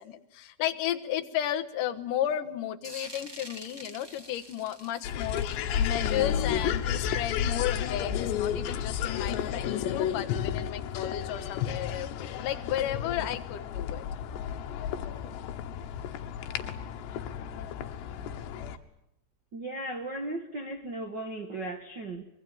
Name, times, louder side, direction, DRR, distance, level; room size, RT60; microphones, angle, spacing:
voice 1, 0.0-14.0, left 11 dB, 60° left, 8 dB, 2.5 m, -33 dB
sound 1, 2.8-8.1, equal, 15° right, 0.8 m, -48 dB
sound 2, 5.0-18.8, left 9 dB, 80° left, 3.4 m, -32 dB
voice 2, 19.5-22.2, right 2 dB, 60° right, 5 dB, 1.1 m, -36 dB
25.0 x 23.0 x 9.1 m, 0.81 s
omnidirectional pair, 4.9 m